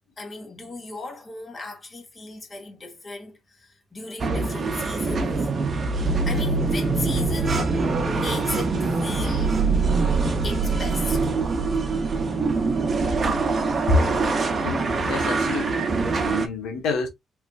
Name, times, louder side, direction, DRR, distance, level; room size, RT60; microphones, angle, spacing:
voice 1, 0.2-5.5 6.3-9.6 10.4-11.3, left 3 dB, 35° left, 1.7 m, -36 dB
sound 1, 4.2-16.5, right 3 dB, 40° right, 0.8 m, -24 dB
voice 2, 14.6-15.9 16.2-17.1, left 3 dB, 85° left, 1.4 m, -26 dB
3.5 x 3.2 x 2.5 m
cardioid pair, 90°, 0 cm